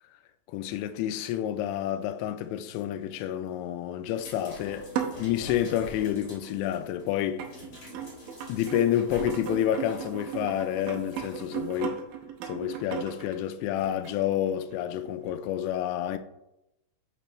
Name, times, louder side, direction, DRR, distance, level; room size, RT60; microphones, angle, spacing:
voice 1, 0.5-4.9 5.2-7.4 8.5-12.0 12.5-16.2, left 11 dB, 85° left, 2.8 m, -29 dB
sound 1, 4.1-11.8 12.8-12.9, left 2 dB, 40° left, 2.0 m, -47 dB
sound 2, 4.8-5.8 6.7-6.8 7.4-14.9 15.3-15.4, right 8 dB, 85° right, 1.9 m, -36 dB
10.0 x 5.3 x 3.0 m
omnidirectional pair, 5.1 m